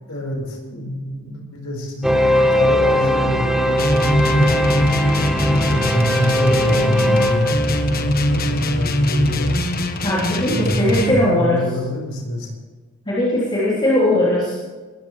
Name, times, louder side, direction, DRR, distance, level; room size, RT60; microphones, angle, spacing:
voice 1, 0.1-4.9 5.6-9.5 10.5-12.5, left 1 dB, 85° left, 1 dB, 4.9 m, -27 dB
sound 1, 2.0-8.4, equal, ahead, 0.8 m, -20 dB
sound 2, 3.7-11.2, left 1 dB, 45° left, 1.4 m, -21 dB
voice 2, 10.0-11.6 13.1-14.5, left 1 dB, 25° left, -8 dB, 3.4 m, -19 dB
20.5 x 15.0 x 3.3 m, 1.4 s
head